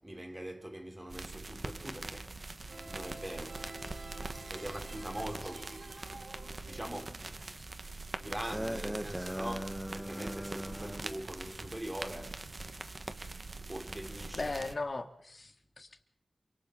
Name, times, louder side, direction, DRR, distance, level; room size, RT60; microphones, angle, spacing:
voice 1, 0.0-2.4 2.9-4.0 4.3-7.5 8.2-12.6 13.3-14.5, right 1 dB, 20° right, 3.6 m, -43 dB
sound 1, 1.1-14.8, right 3 dB, 45° right, 1.6 m, -43 dB
sound 2, 2.7-7.0, right 2 dB, 80° right, 4.0 m, -49 dB
sound 3, 8.5-11.1, equal, 5° right, 1.3 m, -39 dB
voice 2, 14.3-16.0, left 3 dB, 55° left, 2.1 m, -38 dB
28.0 x 26.0 x 4.0 m
wide cardioid pair, 60°, 0 cm